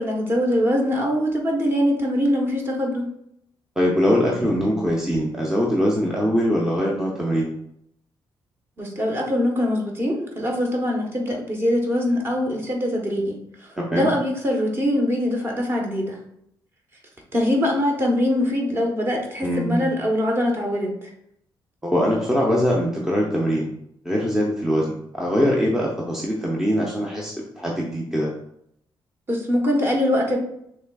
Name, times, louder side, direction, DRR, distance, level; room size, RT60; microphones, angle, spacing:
voice 1, 0.0-3.1 8.8-16.2 17.3-21.1 29.3-30.4, left 1 dB, 25° right, 0 dB, 1.0 m, -23 dB
voice 2, 3.8-7.5 13.8-14.1 19.4-19.9 21.8-23.7 24.0-28.3, equal, 5° right, -3 dB, 0.6 m, -22 dB
6.0 x 3.3 x 2.3 m, 0.75 s
cardioid pair, 145°, 9 cm